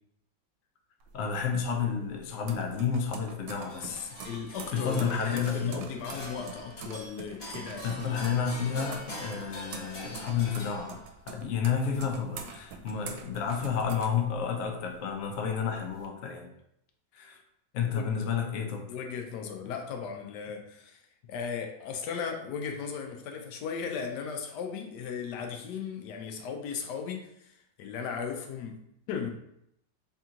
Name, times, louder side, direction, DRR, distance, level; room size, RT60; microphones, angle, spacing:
sound 1, 1.0-14.8 15.2-16.1, right 5 dB, 80° right, 1.3 m, -45 dB
voice 1, 1.1-4.3 4.7-5.9 7.8-11.0 11.3-16.5 17.1-17.4 17.7-18.9, left 6 dB, 90° left, 3 dB, 0.7 m, -31 dB
sound 2, 3.6-11.3, left 1 dB, 40° left, 1.1 m, -43 dB
voice 2, 4.2-8.2 17.9-18.1 18.9-21.0 21.3-29.3, left 6 dB, 75° left, 3 dB, 1.1 m, -37 dB
3.5 x 2.9 x 3.7 m, 0.76 s
omnidirectional pair, 2.0 m